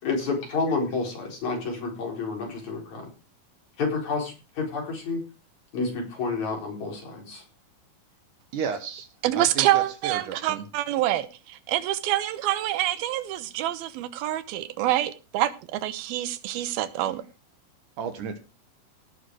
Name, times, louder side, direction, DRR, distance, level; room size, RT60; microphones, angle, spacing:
voice 1, 0.0-3.1 3.8-5.2 5.7-7.4, left 4 dB, 50° left, 5.6 m, -29 dB
voice 2, 8.5-9.1 9.3-10.6 18.0-18.4, right 6 dB, 65° right, 2.6 m, -32 dB
voice 3, 9.2-17.2, right 14 dB, 90° right, 2.9 m, -26 dB
18.0 x 7.0 x 4.8 m
omnidirectional pair, 4.2 m